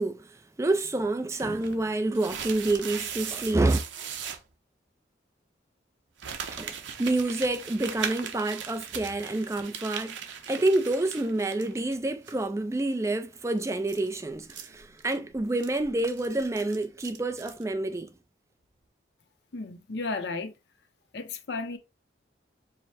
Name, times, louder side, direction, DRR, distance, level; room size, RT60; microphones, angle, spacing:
voice 1, 0.0-3.8 6.5-10.2 10.5-18.1, right 2 dB, 15° right, 0.3 m, -28 dB
sound 1, 1.4-4.4 6.2-12.0 12.2-12.3 13.6-17.6, right 7 dB, 85° right, 0.7 m, -39 dB
voice 2, 19.5-20.5 21.1-21.8, left 3 dB, 65° left, 0.6 m, -33 dB
4.9 x 2.0 x 4.2 m
head